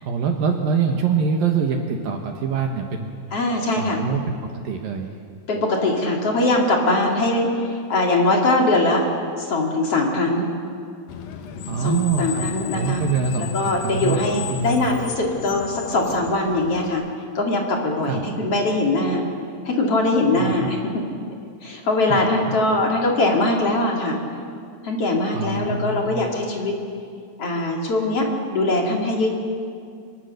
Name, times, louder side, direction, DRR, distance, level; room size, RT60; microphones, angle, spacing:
voice 1, 0.0-3.2 3.8-5.1 11.7-15.0 18.1-18.2 20.4-20.7 22.1-22.2 22.5-22.6 25.3-26.1, right 5 dB, 70° right, 3 dB, 2.3 m, -24 dB
voice 2, 3.3-4.0 5.5-9.1 9.4-10.5 11.8-13.0 13.4-17.0 17.3-19.2 19.6-21.0 21.6-24.2 24.8-26.8 27.4-29.3, left 2 dB, 40° left, 0 dB, 2.8 m, -21 dB
Screech, 11.1-16.9, left 7 dB, 65° left, 2.4 m, -35 dB
25.5 x 22.5 x 6.6 m, 2.3 s
omnidirectional pair, 5.6 m